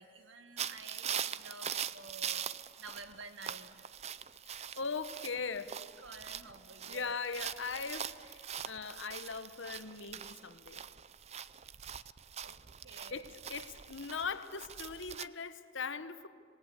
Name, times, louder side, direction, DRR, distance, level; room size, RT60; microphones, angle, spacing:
voice 1, 0.0-2.5 2.8-3.8 6.0-7.2 7.7-7.9 12.4-12.6 12.8-13.3, right 3 dB, 70° right, 2.0 m, -51 dB
sound 1, 0.6-15.3, right 9 dB, 30° right, 0.5 m, -43 dB
voice 2, 4.5-5.8 6.9-10.8 13.1-16.3, left 5 dB, 70° left, 1.1 m, -40 dB
27.0 x 19.0 x 8.2 m
head